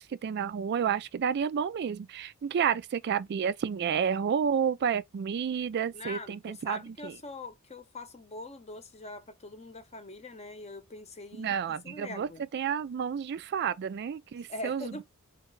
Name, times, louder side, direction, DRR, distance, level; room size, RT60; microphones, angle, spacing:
voice 1, 0.0-7.2 11.3-15.0, right 7 dB, 50° right, 0.3 m, -30 dB
voice 2, 5.9-11.5 11.8-12.4 14.5-15.0, left 2 dB, 30° left, 0.8 m, -42 dB
4.0 x 3.2 x 3.2 m
head